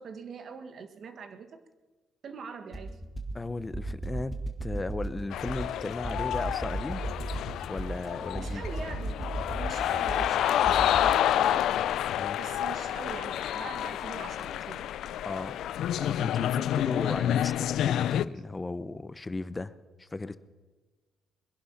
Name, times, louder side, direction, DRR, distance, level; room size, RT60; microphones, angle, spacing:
voice 1, 0.0-1.6 2.2-3.0 8.3-9.2 9.5-11.7 12.4-14.9, right 5 dB, 60° right, 8 dB, 1.6 m, -43 dB
sound 1, 2.7-11.0, right 2 dB, ahead, 2.3 m, -36 dB
voice 2, 3.3-7.0 7.7-8.6 12.2-12.4 15.2-19.7 20.0-20.4, left 2 dB, 20° left, 14 dB, 0.8 m, -36 dB
sound 2, 5.3-18.2, left 11 dB, 80° left, 0.4 m, -29 dB
22.5 x 11.0 x 5.7 m, 1.3 s
cardioid pair, 90°, 0 cm